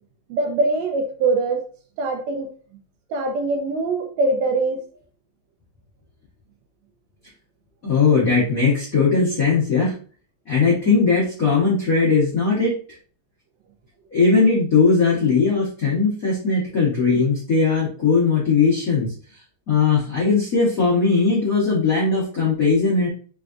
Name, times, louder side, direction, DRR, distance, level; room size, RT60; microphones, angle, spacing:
voice 1, 0.3-1.6 2.0-2.5 3.1-4.9, right 3 dB, 75° right, 1.7 m, -22 dB
voice 2, 7.8-9.9 10.5-12.7 14.1-19.1 19.7-23.1, left 4 dB, 85° left, 0.7 m, -19 dB
4.8 x 3.4 x 2.5 m
omnidirectional pair, 3.6 m